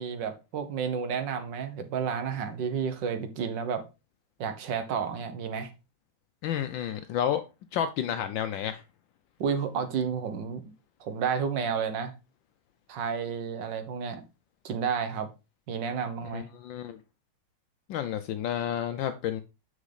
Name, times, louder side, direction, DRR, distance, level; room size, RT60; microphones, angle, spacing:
voice 1, 0.0-3.8 4.4-5.7 9.4-10.6 11.0-12.1 12.9-14.2 14.6-15.3 15.7-16.5, right 6 dB, 60° right, 1.7 m, -31 dB
voice 2, 6.4-7.4 7.7-8.8 16.3-17.0 17.9-19.4, left 10 dB, 75° left, 1.2 m, -30 dB
6.4 x 6.2 x 3.9 m
omnidirectional pair, 2.3 m